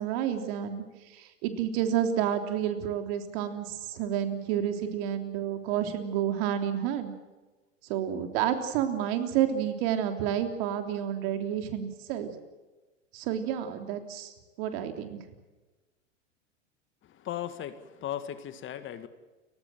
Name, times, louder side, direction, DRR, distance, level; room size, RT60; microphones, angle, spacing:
voice 1, 0.0-7.1 7.9-12.3 13.1-15.2, right 10 dB, 50° right, 6 dB, 3.5 m, -30 dB
voice 2, 17.2-19.1, left 11 dB, 30° left, 11 dB, 2.0 m, -36 dB
30.0 x 15.5 x 7.7 m, 1.2 s
hypercardioid pair, 100°, 37 cm